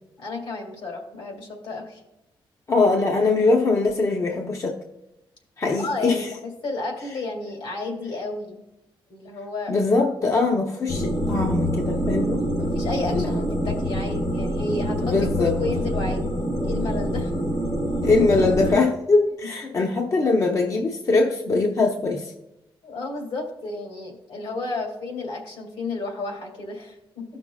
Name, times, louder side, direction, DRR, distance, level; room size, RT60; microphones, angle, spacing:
voice 1, 0.2-2.0 5.8-8.6 9.1-9.8 12.6-16.3 16.6-17.3 22.8-27.2, left 3 dB, 75° left, 2 dB, 2.0 m, -32 dB
voice 2, 2.7-4.8 5.6-6.3 9.7-12.4 13.1-13.4 15.0-15.5 18.0-22.3, left 3 dB, 35° left, 2 dB, 0.6 m, -22 dB
sound 1, 10.9-18.8, equal, 55° left, 1.4 m, -26 dB
15.0 x 5.9 x 2.3 m, 0.90 s
wide cardioid pair, 170°, 9 cm